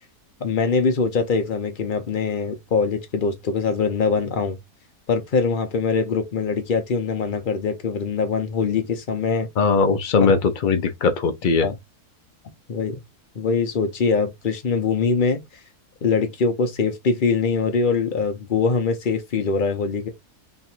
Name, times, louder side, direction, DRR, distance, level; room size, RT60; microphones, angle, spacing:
voice 1, 0.4-4.6 5.1-9.5 11.6-11.7 12.7-13.0 13.3-15.4 16.0-20.1, left 5 dB, 45° left, 0.7 m, -23 dB
voice 2, 9.6-11.7, left 4 dB, 85° left, 0.4 m, -19 dB
3.3 x 2.4 x 4.3 m
omnidirectional pair, 1.6 m